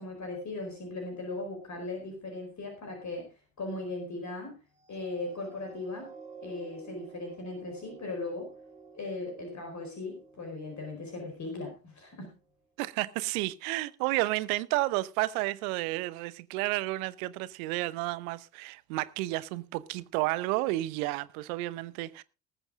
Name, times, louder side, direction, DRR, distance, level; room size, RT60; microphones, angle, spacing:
voice 1, 0.0-3.3 3.6-4.6 4.9-6.1 6.4-8.5 8.9-12.3, left 2 dB, 35° left, 4.6 m, -38 dB
sound 1, 4.8-11.5 12.1-12.2, right 4 dB, 15° right, 3.5 m, -51 dB
voice 2, 12.8-22.2, right 18 dB, 65° right, 0.9 m, -31 dB
19.5 x 8.1 x 3.8 m
figure-of-eight pair, 55°, 47 cm